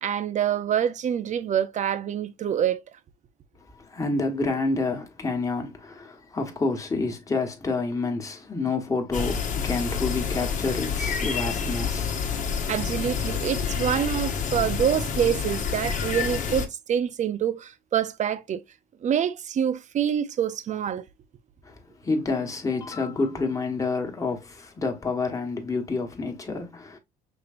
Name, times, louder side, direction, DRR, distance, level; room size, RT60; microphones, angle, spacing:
voice 1, 0.0-2.8 12.7-18.6 19.0-21.0, right 9 dB, 45° right, 0.7 m, -26 dB
voice 2, 3.9-12.3 21.6-21.7 22.0-27.0, left 3 dB, 20° left, 1.5 m, -28 dB
sound 1, 9.1-16.7, left 6 dB, 50° left, 1.2 m, -28 dB
6.1 x 3.2 x 2.4 m
cardioid pair, 110°, 17 cm